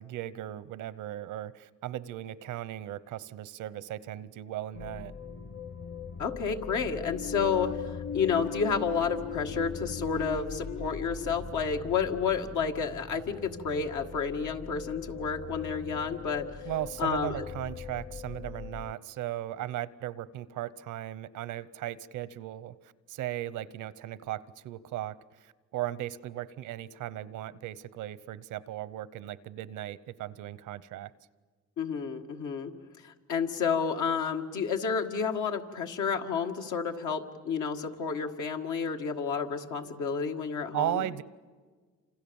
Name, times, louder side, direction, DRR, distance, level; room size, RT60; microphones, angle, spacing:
voice 1, 0.0-5.1 16.7-31.1 40.7-41.2, right 13 dB, 85° right, 18 dB, 0.9 m, -37 dB
sound 1, 4.7-18.9, left 6 dB, 40° left, 1.2 m, -42 dB
voice 2, 6.2-16.6 17.0-17.4 31.8-32.7 33.0-41.1, left 6 dB, 80° left, 4 dB, 2.1 m, -30 dB
sound 2, 7.0-12.7, left 6 dB, 25° left, 0.7 m, -40 dB
29.0 x 26.5 x 7.1 m, 1.5 s
cardioid pair, 90°, 30 cm